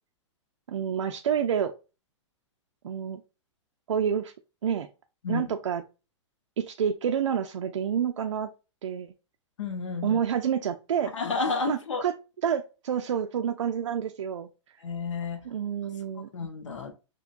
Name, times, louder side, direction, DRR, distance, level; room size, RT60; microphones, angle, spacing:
voice 1, 0.7-1.7 2.8-3.2 3.9-4.3 4.6-4.9 5.3-5.8 6.6-8.5 8.8-9.1 10.0-11.1 11.7-12.1 12.4-14.5 15.5-16.3, right 8 dB, 75° right, 0.4 m, -28 dB
voice 2, 9.6-10.2 11.1-12.0 14.8-15.4 16.3-16.9, left 4 dB, 75° left, 0.8 m, -31 dB
6.1 x 2.2 x 2.4 m
figure-of-eight pair, 110°, 16 cm